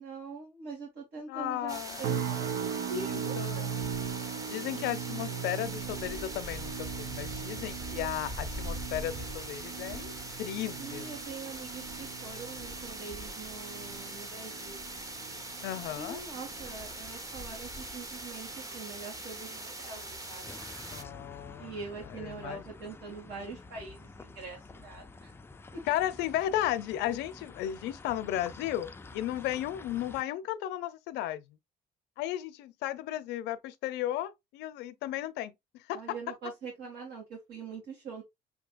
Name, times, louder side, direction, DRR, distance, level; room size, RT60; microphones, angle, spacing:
voice 1, 0.0-3.4 10.8-14.8 16.0-20.6 21.6-25.3 25.7-25.8 35.9-38.2, right 4 dB, 70° right, 2.0 m, -43 dB
voice 2, 1.3-2.2 3.0-3.9 4.5-10.1 10.4-11.1 15.6-16.2 20.8-21.7 22.2-22.6 25.9-31.6 32.2-36.0, left 13 dB, 90° left, 0.6 m, -35 dB
sound 1, 1.7-21.0, right 1 dB, 20° right, 0.8 m, -41 dB
sound 2, 2.0-17.2 17.6-18.0 18.5-18.7, right 8 dB, 85° right, 0.4 m, -39 dB
sound 3, 20.4-30.2, left 3 dB, 15° left, 0.3 m, -49 dB
6.4 x 2.8 x 2.4 m
cardioid pair, 110°, 17 cm